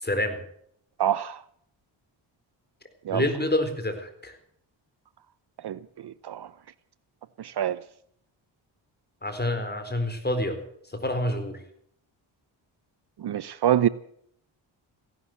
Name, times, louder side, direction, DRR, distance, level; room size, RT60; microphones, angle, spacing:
voice 1, 0.0-0.4 3.1-4.4 9.2-10.6 10.9-11.6, left 1 dB, 20° left, 4.1 m, -27 dB
voice 2, 1.0-1.4 3.0-3.2 5.6-6.5 7.4-7.8 13.2-13.9, right 10 dB, 55° right, 0.7 m, -26 dB
16.0 x 11.5 x 7.8 m
cardioid pair, 65°, 48 cm